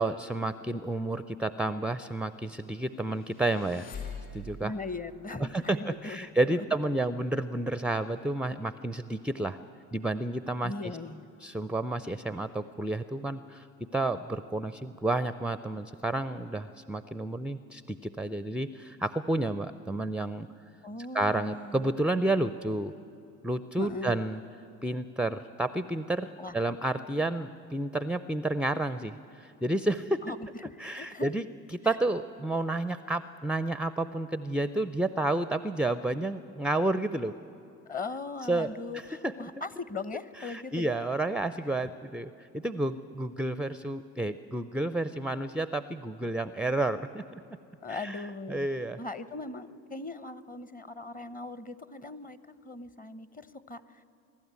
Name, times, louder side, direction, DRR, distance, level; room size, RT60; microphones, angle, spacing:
voice 1, 0.0-3.9 4.3-4.7 5.4-9.6 9.9-10.9 11.4-13.7 13.9-20.5 21.1-22.9 23.4-24.4 24.8-30.2 30.8-31.5 31.8-37.3 38.5-38.7 39.2-39.3 40.4-47.4 47.9-48.2 48.5-49.0, right 2 dB, 5° right, 13 dB, 0.5 m, -30 dB
sound 1, 3.1-4.8, left 4 dB, 55° left, 4.8 m, -42 dB
voice 2, 4.6-6.7 10.6-11.3 20.8-21.9 23.8-24.2 26.4-26.6 30.2-31.3 31.8-31.9 37.8-41.0 47.8-48.7 49.0-54.0, left 3 dB, 20° left, 15 dB, 1.0 m, -39 dB
23.5 x 12.0 x 9.6 m, 2.8 s
hypercardioid pair, 65°, 38 cm